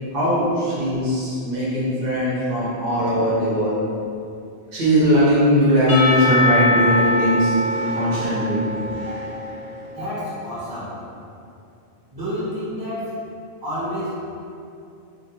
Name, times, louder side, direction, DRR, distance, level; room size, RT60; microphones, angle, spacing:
voice 1, 0.1-3.7 4.7-7.5 8.0-8.6, equal, 60° right, -9 dB, 1.0 m, -19 dB
Percussion / Church bell, 5.9-10.0, left 2 dB, 35° left, 0.6 m, -23 dB
voice 2, 9.9-11.0 12.1-13.2 13.6-14.2, equal, 20° right, -12 dB, 0.9 m, -29 dB
2.5 x 2.1 x 2.9 m, 2.6 s
omnidirectional pair, 1.1 m